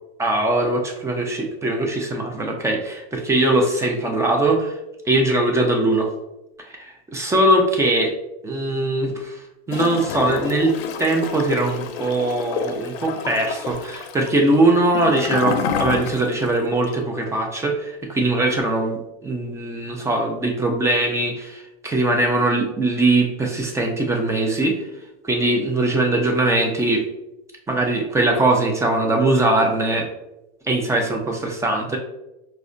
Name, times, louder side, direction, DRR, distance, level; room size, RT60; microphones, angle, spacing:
voice 1, 0.2-4.7 5.1-6.1 6.7-8.1 8.4-9.4 9.7-24.8 25.2-27.0 27.7-30.1 30.6-32.0, right 2 dB, 10° right, 1 dB, 0.4 m, -21 dB
Gurgling / Toilet flush, 9.7-16.5 16.8-16.9, left 6 dB, 85° left, 0.5 m, -28 dB
4.7 x 2.1 x 2.5 m, 0.93 s
supercardioid pair, 135°, 30 cm